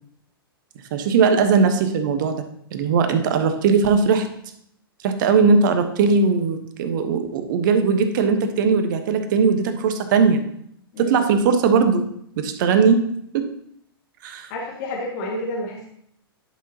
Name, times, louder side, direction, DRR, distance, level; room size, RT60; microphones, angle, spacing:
voice 1, 0.9-2.4 2.7-4.3 5.0-10.4 11.0-12.1 12.4-13.0 13.3-13.5 14.2-14.5, right 5 dB, 55° right, 8 dB, 1.1 m, -19 dB
voice 2, 10.9-11.2 14.5-15.9, left 1 dB, 50° left, -1 dB, 1.9 m, -30 dB
10.5 x 6.1 x 2.8 m, 0.69 s
hypercardioid pair, 110°, 13 cm